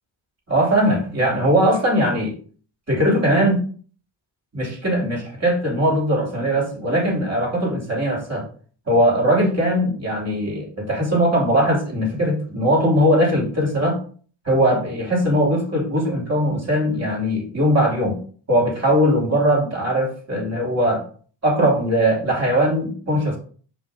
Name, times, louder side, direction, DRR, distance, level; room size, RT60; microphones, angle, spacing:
voice 1, 0.5-2.3 2.9-3.7 4.5-8.5 8.9-14.0 14.4-18.2 18.5-21.0 21.4-23.4, equal, 35° right, -2 dB, 3.2 m, -20 dB
5.6 x 5.3 x 3.9 m, 0.43 s
cardioid pair, 95°, 45 cm